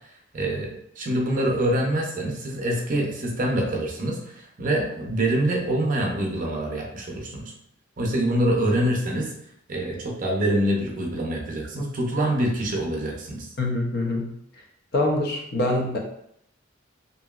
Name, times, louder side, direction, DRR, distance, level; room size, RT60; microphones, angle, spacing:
voice 1, 0.3-7.5 8.0-9.3 9.7-13.5, right 1 dB, 40° right, 0 dB, 0.5 m, -25 dB
voice 2, 13.6-14.3 14.9-16.0, left 2 dB, 50° left, 1 dB, 0.5 m, -24 dB
2.8 x 2.6 x 2.3 m, 0.72 s
head